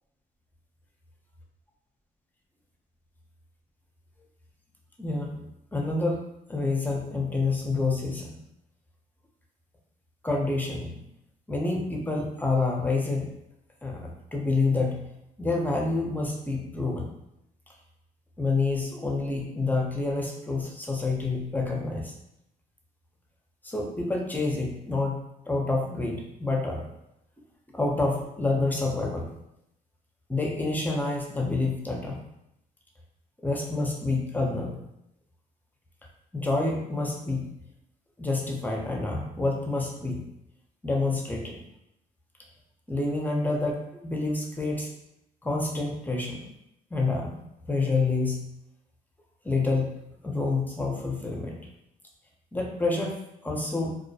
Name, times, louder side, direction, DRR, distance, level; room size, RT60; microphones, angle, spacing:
voice 1, 5.0-5.4 5.7-6.2 6.5-8.4 10.2-11.0 11.5-13.3 13.8-15.1 15.4-17.1 18.4-22.1 23.6-26.8 27.7-29.3 30.3-32.2 33.4-34.8 36.3-37.5 38.2-40.3 40.8-41.6 42.9-44.9 45.4-46.5 46.9-47.4 47.7-48.5 49.4-51.6 52.5-54.0, left 3 dB, 10° left, 0 dB, 0.6 m, -28 dB
2.3 x 2.1 x 2.7 m, 0.81 s
cardioid pair, 80°, 17 cm